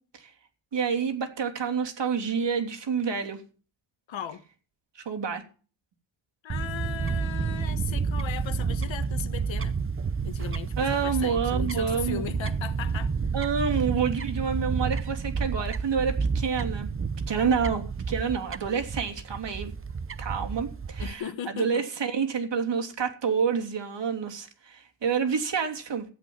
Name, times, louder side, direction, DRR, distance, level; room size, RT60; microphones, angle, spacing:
voice 1, 0.7-3.4 4.9-5.4 10.8-12.4 13.3-16.9 17.3-19.7 20.2-26.0, right 6 dB, 65° right, 3.2 m, -28 dB
voice 2, 4.1-4.4 6.4-9.8 10.2-13.1 21.0-21.8, left 9 dB, 75° left, 1.4 m, -37 dB
Fowl / Bird, 6.5-21.1, right 5 dB, 25° right, 0.8 m, -30 dB
15.5 x 8.4 x 7.1 m
cardioid pair, 85°, 47 cm